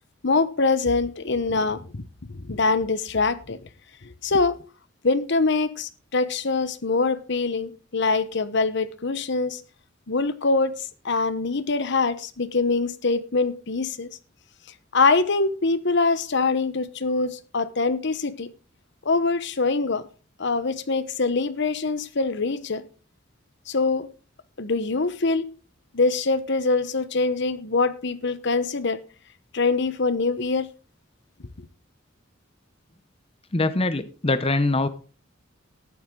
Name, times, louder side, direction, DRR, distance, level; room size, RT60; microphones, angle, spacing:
voice 1, 0.2-3.6 4.0-4.6 5.0-9.6 10.1-14.1 14.9-18.5 19.0-20.1 20.4-22.8 23.7-24.1 24.6-25.5 25.9-29.0 29.5-30.7, left 3 dB, 65° left, 1.0 m, -24 dB
voice 2, 33.5-34.9, left 2 dB, 30° left, 0.8 m, -23 dB
14.0 x 11.5 x 3.8 m
head